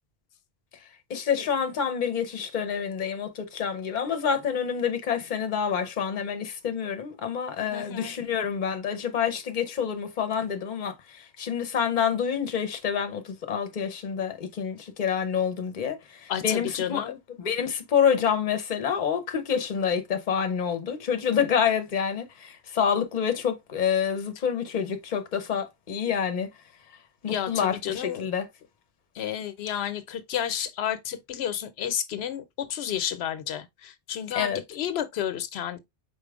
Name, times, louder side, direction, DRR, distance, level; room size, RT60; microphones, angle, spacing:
voice 1, 1.1-17.1 17.4-26.5 27.2-28.5 34.3-34.6, left 7 dB, 50° left, 0.8 m, -27 dB
voice 2, 7.7-8.1 16.3-17.2 27.3-28.3 29.2-35.8, left 10 dB, 85° left, 0.8 m, -31 dB
5.0 x 4.2 x 2.3 m
omnidirectional pair, 1.0 m